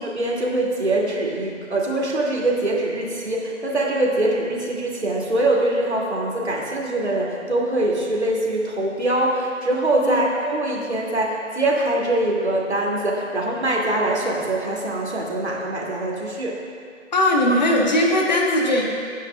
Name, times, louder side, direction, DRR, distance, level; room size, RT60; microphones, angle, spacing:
voice 1, 0.0-16.6, right 1 dB, 60° right, -2 dB, 2.4 m, -23 dB
voice 2, 17.1-18.8, left 1 dB, 35° left, -2 dB, 1.4 m, -19 dB
23.0 x 9.7 x 2.3 m, 2.3 s
figure-of-eight pair, 150°, 37 cm